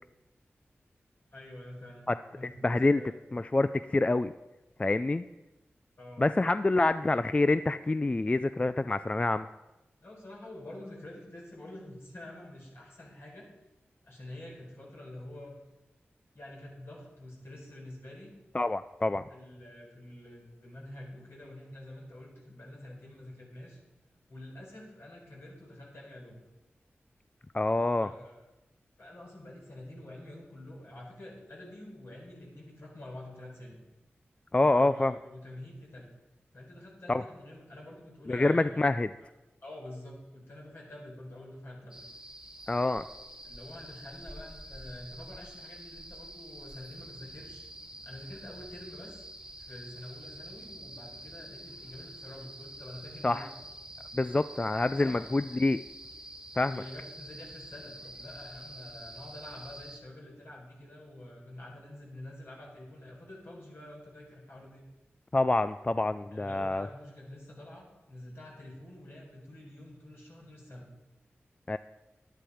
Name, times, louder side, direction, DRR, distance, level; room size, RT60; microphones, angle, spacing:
voice 1, 1.3-2.1 2.3-2.5 2.9-3.1 6.0-6.3 10.0-13.5 14.0-15.5 16.3-18.3 19.3-23.8 24.3-26.4 28.0-28.4 29.0-33.8 34.6-36.1 36.5-38.9 39.6-42.1 43.4-47.6 48.0-49.2 49.6-53.5 55.0-55.2 56.6-64.8 66.3-70.9, left 1 dB, 65° left, -2 dB, 4.6 m, -47 dB
voice 2, 2.6-3.0 3.3-4.3 4.8-5.2 6.2-9.5 18.5-19.2 27.5-28.1 34.5-35.1 37.1-37.2 38.3-39.1 42.7-43.1 53.2-53.5 54.1-55.8 56.6-56.8 65.3-66.9 71.7-71.8, left 2 dB, 25° left, 12 dB, 0.3 m, -26 dB
sound 1, 41.9-60.0, right 1 dB, 15° right, 1.4 m, -47 dB
11.5 x 10.5 x 5.0 m, 1.0 s
wide cardioid pair, 75°, 4 cm